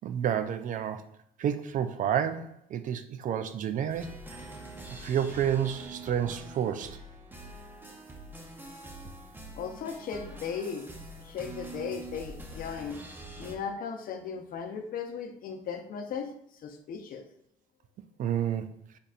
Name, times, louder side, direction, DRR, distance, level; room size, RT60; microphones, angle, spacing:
voice 1, 0.0-1.0 1.4-4.2 4.9-7.0 18.2-18.8, right 9 dB, 50° right, 10 dB, 0.4 m, -30 dB
sound 1, 3.9-13.5, right 1 dB, 10° right, 0.8 m, -45 dB
voice 2, 9.6-10.9 11.2-13.0 13.4-16.3 16.6-17.3, left 6 dB, 55° left, 5 dB, 0.7 m, -37 dB
5.2 x 4.1 x 2.4 m, 0.70 s
cardioid pair, 110°, 17 cm